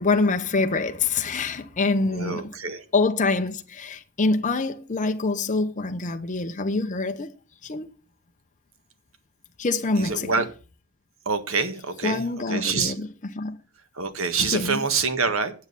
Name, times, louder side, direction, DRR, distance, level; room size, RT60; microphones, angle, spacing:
voice 1, 0.0-2.5 2.9-7.3 7.6-7.9 9.6-10.3 12.0-13.1 13.3-13.6 14.4-14.8, left 3 dB, 35° left, 0.7 m, -25 dB
voice 2, 2.0-2.8 10.0-10.4 11.2-12.9 13.9-15.5, right 4 dB, 65° right, 1.5 m, -26 dB
9.6 x 7.3 x 6.7 m
head